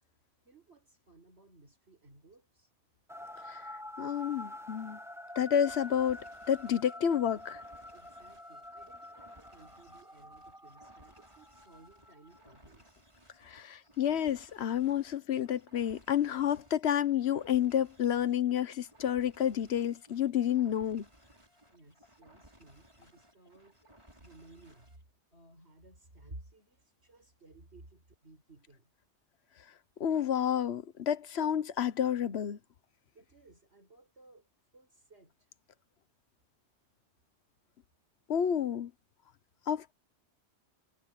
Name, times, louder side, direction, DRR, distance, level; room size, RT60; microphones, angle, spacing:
voice 1, 0.4-2.7 7.9-13.0 21.7-23.8 24.2-24.9 25.3-28.9 33.1-34.4 34.7-35.5, right 2 dB, 70° right, 5.4 m, -57 dB
sound 1, 3.1-12.6, left 1 dB, 5° right, 0.9 m, -47 dB
voice 2, 4.0-5.0 5.4-7.6 13.4-21.1 30.0-32.6 38.3-38.9 39.7-39.9, left 9 dB, 70° left, 1.1 m, -30 dB
sound 2, 5.6-25.0, right 1 dB, 25° right, 5.7 m, -61 dB
omnidirectional pair, 1.2 m